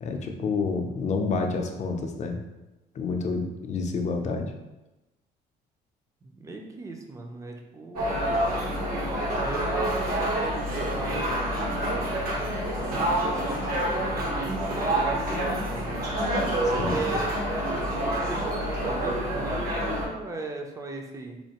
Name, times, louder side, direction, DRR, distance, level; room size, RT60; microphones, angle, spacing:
voice 1, 0.0-2.4 2.9-4.5 16.8-17.2, left 4 dB, 45° left, 4 dB, 0.5 m, -29 dB
voice 2, 6.2-8.4 9.4-12.1 12.8-16.0 16.6-21.4, right 3 dB, 20° right, 2 dB, 0.5 m, -38 dB
sound 1, 8.0-20.1, right 1 dB, 60° right, 1.1 m, -27 dB
4.3 x 2.8 x 2.9 m, 1.0 s
cardioid pair, 110°, 17 cm